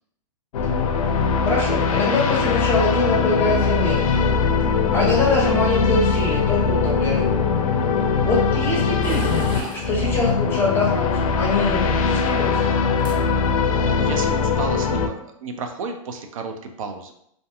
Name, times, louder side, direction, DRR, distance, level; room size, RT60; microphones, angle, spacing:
sound 1, 0.5-15.1, left 5 dB, 85° left, 0.4 m, -21 dB
voice 1, 1.4-4.2 4.9-7.2 8.2-11.1 11.4-12.7, left 2 dB, 15° left, -4 dB, 0.8 m, -23 dB
sound 2, 9.0-9.9 11.2-11.9 12.7-12.8 13.0-13.2 13.6-13.9, right 1 dB, 25° right, 0.7 m, -37 dB
voice 2, 14.0-17.1, right 4 dB, 75° right, 5 dB, 0.4 m, -32 dB
2.6 x 2.5 x 2.4 m, 0.72 s
hypercardioid pair, 140°, 18 cm